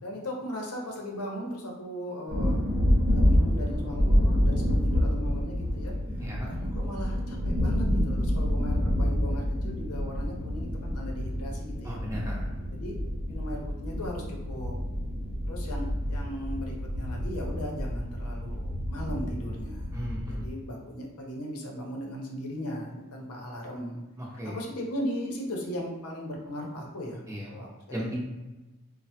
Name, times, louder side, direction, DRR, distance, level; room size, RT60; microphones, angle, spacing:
voice 1, 0.0-2.6 3.1-12.0 12.7-12.9 13.3-14.8 15.4-20.0 20.3-24.0 24.4-28.2, equal, 80° left, 0 dB, 0.7 m, -38 dB
sound 1, 2.3-20.5, equal, 90° right, 0.7 m, -28 dB
voice 2, 6.2-6.5 11.8-12.4 19.9-20.4 24.4-24.6 27.3-27.5 27.9-28.2, equal, 15° right, -4 dB, 0.6 m, -35 dB
3.2 x 2.1 x 2.8 m, 1.1 s
head